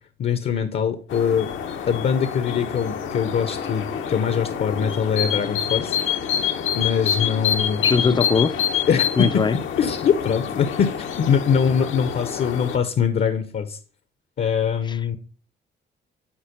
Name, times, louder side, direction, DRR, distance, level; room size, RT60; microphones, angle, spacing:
voice 1, 0.2-1.5 1.9-6.0 6.7-8.2 8.9-9.4 9.8-13.8 14.4-15.2, left 7 dB, 55° left, 0.7 m, -23 dB
sound 1, 1.1-12.8, left 8 dB, 80° left, 0.9 m, -27 dB
voice 2, 7.8-8.5 9.2-9.6 14.9-15.0, left 5 dB, 25° left, 0.4 m, -20 dB
7.3 x 4.4 x 5.2 m
cardioid pair, 90°, 20 cm